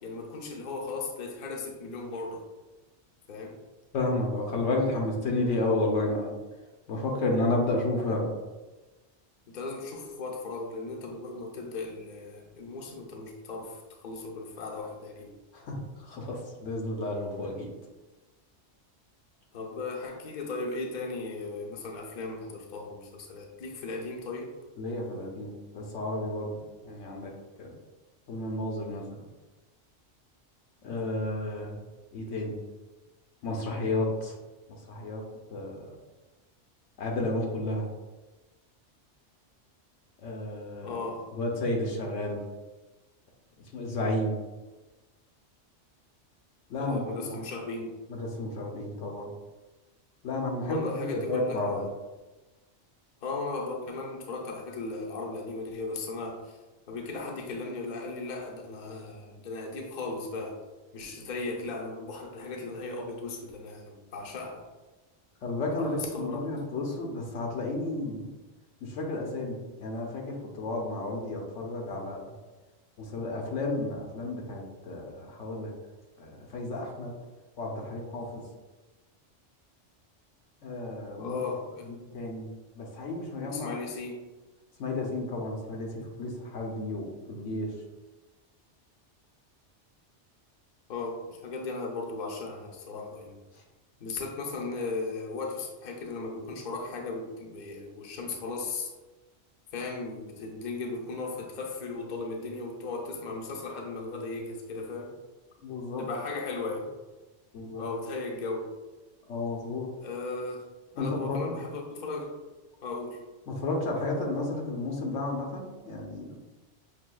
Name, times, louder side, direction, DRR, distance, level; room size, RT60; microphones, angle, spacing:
voice 1, 0.0-2.4 3.3-3.6 9.5-15.3 19.5-24.5 40.8-41.4 46.7-47.9 50.6-51.8 53.2-56.6 56.9-60.6 60.9-64.6 65.8-66.5 81.2-81.9 83.5-84.2 90.9-93.4 94.0-98.9 99.7-105.2 106.0-106.9 107.8-108.7 110.0-110.7 110.9-112.4 112.8-113.2, left 3 dB, 50° left, -1 dB, 0.7 m, -36 dB
voice 2, 3.9-6.3 6.9-8.3 15.5-17.7 24.8-27.3 27.6-27.7 28.3-29.3 30.8-31.8 32.1-32.6 33.4-34.3 34.9-35.2 35.5-36.0 37.0-37.9 40.2-41.0 41.4-42.4 43.7-44.4 46.7-47.4 48.1-49.3 50.2-51.9 65.4-68.3 68.8-72.2 73.0-75.7 76.2-77.1 77.6-78.4 80.6-81.4 81.9-82.5 82.8-83.7 84.8-87.7 105.6-106.0 107.5-107.8 109.3-109.9 111.0-111.6 113.5-116.4, left 2 dB, 90° left, 0 dB, 1.1 m, -32 dB
5.8 x 2.7 x 2.2 m, 1.2 s
omnidirectional pair, 1.2 m